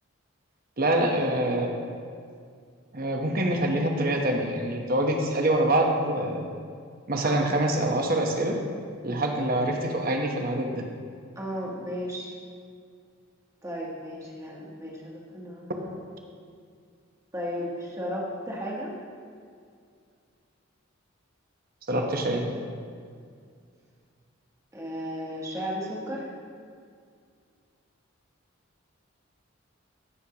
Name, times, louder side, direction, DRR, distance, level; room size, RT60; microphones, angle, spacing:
voice 1, 0.8-1.8 2.9-6.5 7.1-8.6 9.0-10.8 21.9-22.4, right 1 dB, 45° right, 2 dB, 1.0 m, -25 dB
voice 2, 11.3-12.3 13.6-15.9 17.3-18.9 24.7-26.3, equal, 15° right, -4 dB, 1.3 m, -34 dB
15.5 x 6.4 x 2.9 m, 2.2 s
head